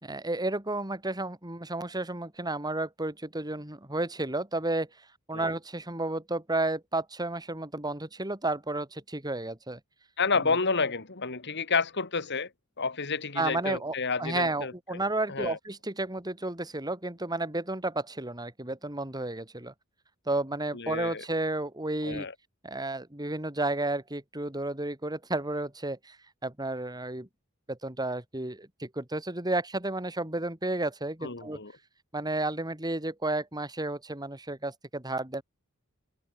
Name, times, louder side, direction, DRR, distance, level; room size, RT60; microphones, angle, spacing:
voice 1, 0.0-4.9 5.3-9.8 13.4-19.7 20.3-22.3 22.6-26.2 26.4-27.3 27.7-31.6 32.1-35.4, right 2 dB, 20° right, 3.7 m, -32 dB
voice 2, 10.2-12.5 12.8-14.7 15.3-15.6 20.7-21.2 22.0-22.3 31.2-31.7, left 4 dB, 55° left, 2.6 m, -30 dB
head